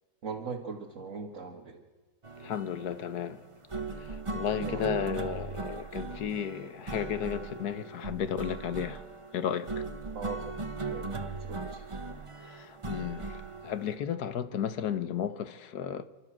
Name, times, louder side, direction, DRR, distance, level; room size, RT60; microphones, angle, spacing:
voice 1, 0.2-1.8 4.6-4.9 10.1-10.5 10.9-11.9, right 5 dB, 40° right, 1.8 m, -40 dB
sound 1, 2.2-14.0, right 3 dB, 20° right, 0.8 m, -39 dB
voice 2, 2.4-3.4 3.9-9.0 9.3-9.8 12.4-16.0, left 8 dB, 60° left, 1.4 m, -34 dB
29.0 x 12.5 x 7.4 m
omnidirectional pair, 2.1 m